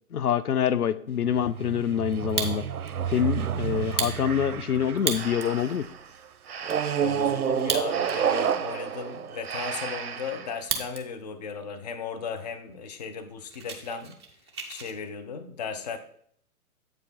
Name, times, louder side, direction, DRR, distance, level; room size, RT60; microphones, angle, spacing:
voice 1, 0.1-2.6 3.1-5.8, left 9 dB, 80° left, 15 dB, 0.5 m, -26 dB
sound 1, 1.2-5.8 6.6-10.2, right 8 dB, 75° right, 0.6 m, -30 dB
Fire, 2.1-2.9 3.3-3.4 3.8-5.6 6.1-6.2 6.3-6.8 7.5-8.3 8.7-8.8 9.3-11.0 11.4-11.8 12.4-12.5 12.7-12.9 13.2-14.9, right 5 dB, 20° right, 0.5 m, -34 dB
Breathing, 5.1-10.6, right 6 dB, 45° right, 0.8 m, -38 dB
voice 2, 7.0-14.1 14.7-16.0, left 5 dB, 30° left, 9 dB, 0.5 m, -36 dB
7.8 x 4.8 x 4.0 m, 0.64 s
figure-of-eight pair, 120°, 44 cm